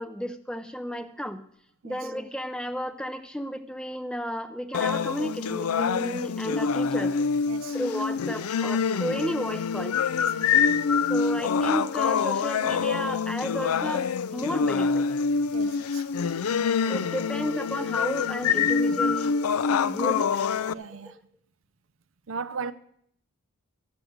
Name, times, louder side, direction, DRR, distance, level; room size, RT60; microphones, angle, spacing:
voice 1, 0.0-1.4 1.8-7.3 7.7-10.0 11.1-15.1 16.9-19.3 19.9-20.4 21.0-21.1, equal, 5° left, 0.5 m, -33 dB
sound 1, 4.7-20.7, left 6 dB, 85° left, 0.4 m, -26 dB
voice 2, 10.1-10.6 15.5-16.1 20.7-21.2 22.3-22.7, right 5 dB, 65° right, 0.5 m, -37 dB
13.0 x 6.2 x 7.8 m
head